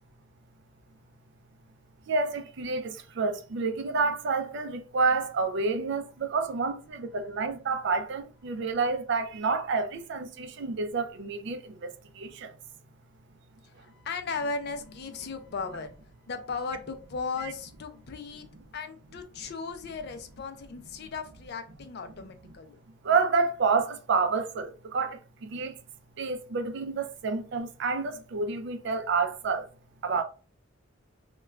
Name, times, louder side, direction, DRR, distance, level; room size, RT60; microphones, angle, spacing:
voice 1, 2.1-12.5 23.0-25.7 26.2-29.7 30.0-30.2, right 4 dB, 60° right, 0.4 m, -29 dB
voice 2, 13.6-15.9 16.3-18.5 18.7-22.8, left 4 dB, 55° left, 0.4 m, -36 dB
2.3 x 2.2 x 3.1 m
head